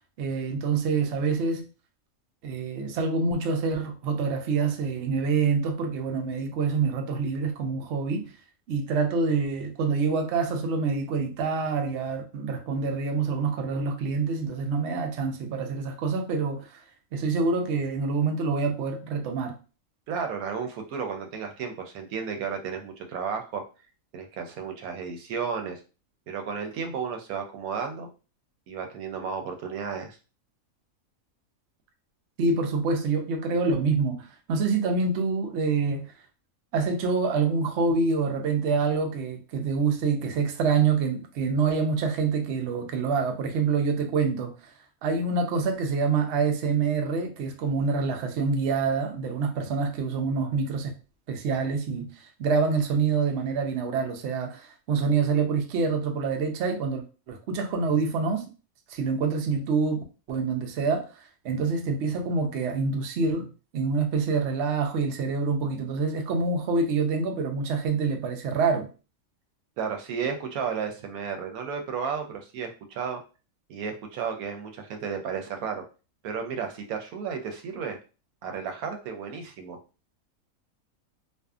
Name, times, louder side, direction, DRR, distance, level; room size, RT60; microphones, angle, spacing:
voice 1, 0.2-1.7 2.4-8.3 8.7-16.8 17.1-19.6 32.4-36.1 36.7-44.5 45.0-50.9 51.3-52.1 52.4-58.5 58.9-63.5 63.7-68.9, right 4 dB, 65° right, 0.7 m, -26 dB
voice 2, 20.1-23.6 24.1-25.8 26.3-28.1 28.7-30.2 69.8-73.2 73.7-75.8 76.2-78.0 78.4-79.8, right 6 dB, 85° right, 1.0 m, -33 dB
2.6 x 2.3 x 2.3 m
omnidirectional pair, 1.5 m